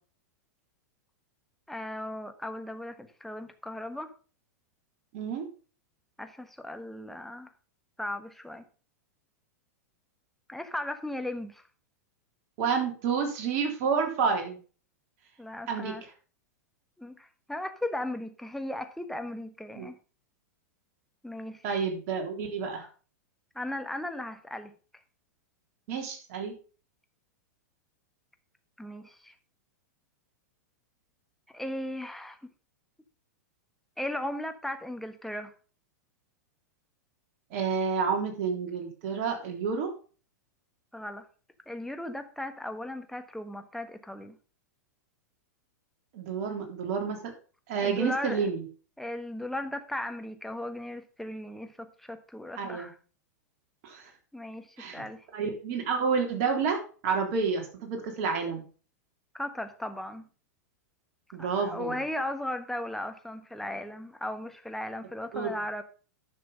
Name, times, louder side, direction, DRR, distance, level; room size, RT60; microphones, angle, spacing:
voice 1, 1.7-4.1 6.2-7.5 8.0-8.7 10.5-11.6 15.4-16.0 17.0-19.9 21.2-21.8 23.5-24.7 28.8-29.3 31.5-32.4 34.0-35.5 40.9-41.3 41.7-44.3 47.8-48.5 49.0-53.0 54.3-55.3 59.3-60.2 61.4-65.8, left 1 dB, 5° left, 7 dB, 1.3 m, -36 dB
voice 2, 5.1-5.5 12.6-14.6 15.7-15.9 19.7-19.9 21.6-22.9 25.9-26.5 37.5-39.9 46.1-47.3 47.7-48.6 52.6-52.9 53.8-54.1 54.8-55.0 55.3-58.6 61.3-62.0 65.3-65.6, right 5 dB, 50° right, 3 dB, 3.3 m, -29 dB
10.5 x 6.2 x 5.4 m, 0.38 s
hypercardioid pair, 105°, 9 cm